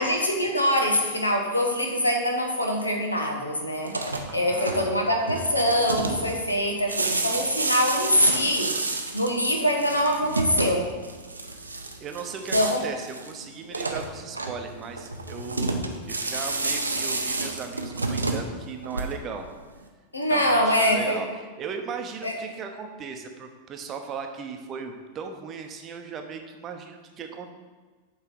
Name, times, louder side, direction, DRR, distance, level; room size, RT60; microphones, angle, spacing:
voice 1, 0.0-3.9 4.3-8.7 9.1-10.9 12.5-12.8 20.1-21.2 22.2-22.3, equal, 80° left, 2 dB, 1.0 m, -24 dB
sound 1, 3.8-19.5, right 2 dB, 80° right, 0.6 m, -30 dB
voice 2, 4.3-5.0 12.0-19.5 20.3-21.3 21.6-27.5, right 6 dB, 30° right, 4 dB, 0.7 m, -37 dB
8.1 x 3.2 x 5.3 m, 1.4 s
figure-of-eight pair, 90°, 0 cm